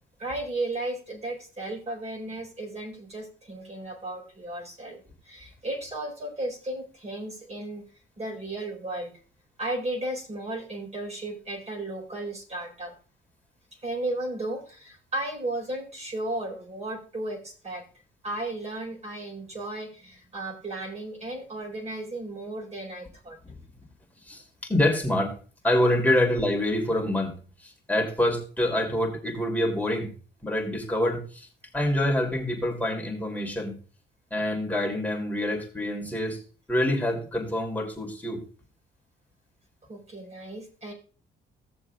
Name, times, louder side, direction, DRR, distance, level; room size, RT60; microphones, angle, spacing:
voice 1, 0.2-7.8 8.2-9.1 9.6-12.9 13.8-17.8 18.2-23.4 39.9-40.9, right 2 dB, 35° right, 4.4 m, -34 dB
voice 2, 24.2-25.3 25.6-27.4 27.6-30.1 30.4-31.5 31.7-33.7 34.3-36.4 36.7-38.4, left 1 dB, 10° left, 3.0 m, -26 dB
16.5 x 7.0 x 2.4 m
cardioid pair, 90°, 20 cm